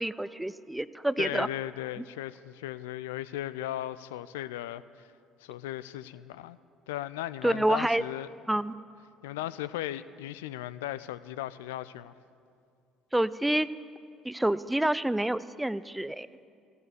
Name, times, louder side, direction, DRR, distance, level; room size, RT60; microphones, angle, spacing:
voice 1, 0.0-1.5 7.4-8.0 8.5-8.7 13.1-13.7 14.2-16.5, right 1 dB, 5° right, 17 dB, 0.4 m, -28 dB
voice 2, 1.2-5.1 5.4-6.6 6.9-8.3 9.2-12.1, left 13 dB, 65° left, 15 dB, 0.3 m, -37 dB
16.0 x 11.0 x 8.2 m, 2.3 s
figure-of-eight pair, 55°, 0 cm